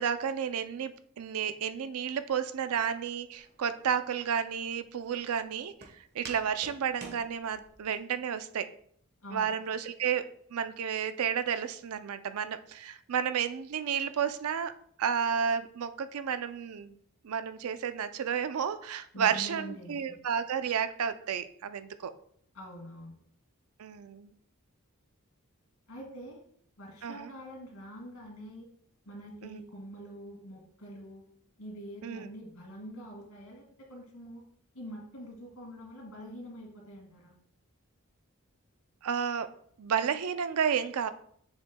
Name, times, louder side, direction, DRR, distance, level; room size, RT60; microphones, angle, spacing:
voice 1, 0.0-8.7 9.3-17.0 17.2-22.1 23.8-24.3 27.0-27.3 29.4-29.6 32.0-32.3 39.0-39.5 39.8-41.1, right 7 dB, 90° right, 12 dB, 0.5 m, -32 dB
Walk footsteps, 3.4-8.0, right 3 dB, 50° right, 1.1 m, -50 dB
voice 2, 9.2-9.5 19.1-20.0 22.5-23.2 25.9-26.4 26.8-28.7 29.1-31.2 31.6-33.6 33.9-34.4 34.7-37.3, equal, 85° left, -1 dB, 2.2 m, -45 dB
7.2 x 6.3 x 2.2 m, 0.63 s
head